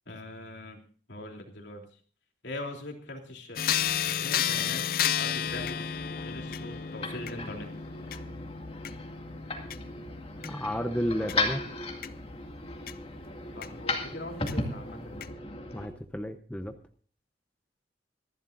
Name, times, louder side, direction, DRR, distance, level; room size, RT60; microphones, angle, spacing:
voice 1, 0.1-0.8 1.1-1.8 2.4-3.7 4.1-4.8 5.2-5.8 6.1-7.7 13.6-15.3, left 1 dB, 70° left, 2 dB, 3.2 m, -41 dB
sound 1, 3.6-12.9 13.6-13.7 14.5-14.6 15.2-15.3, left 9 dB, 50° left, 0.5 m, -33 dB
sound 2, 5.3-15.9, left 2 dB, 30° left, 2.2 m, -36 dB
voice 2, 10.4-11.6 15.7-16.8, equal, 5° left, 6 dB, 0.8 m, -32 dB
25.5 x 11.5 x 2.6 m, 0.42 s
head